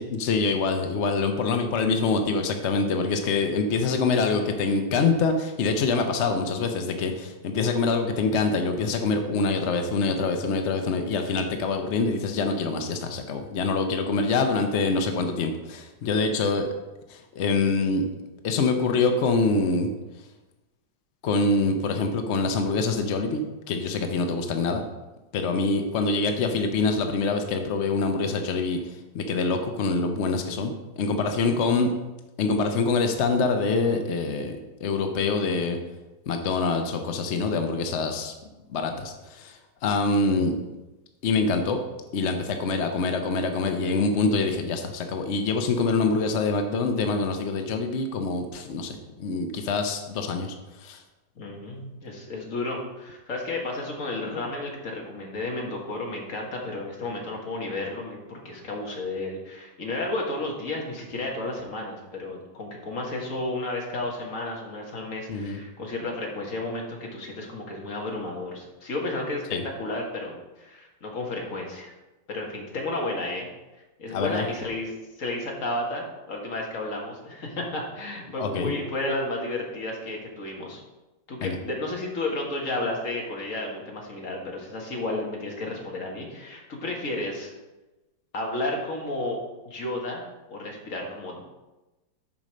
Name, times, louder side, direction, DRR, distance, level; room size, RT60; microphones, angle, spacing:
voice 1, 0.0-16.7 17.1-18.1 18.4-19.9 21.2-24.8 25.3-28.8 29.1-31.9 32.4-35.8 36.3-38.3 38.7-40.5 41.2-41.8 42.1-50.6 50.8-51.0 65.3-65.6 69.5-69.6 74.1-74.5 78.4-78.7 81.4-81.6, left 4 dB, 70° left, 6 dB, 0.6 m, -25 dB
voice 2, 51.4-69.4 69.8-71.9 72.3-73.5 74.0-80.8 81.3-87.5 88.3-89.4 89.7-91.4, left 2 dB, 45° left, 0 dB, 1.8 m, -32 dB
7.4 x 5.1 x 6.4 m, 1.1 s
omnidirectional pair, 2.1 m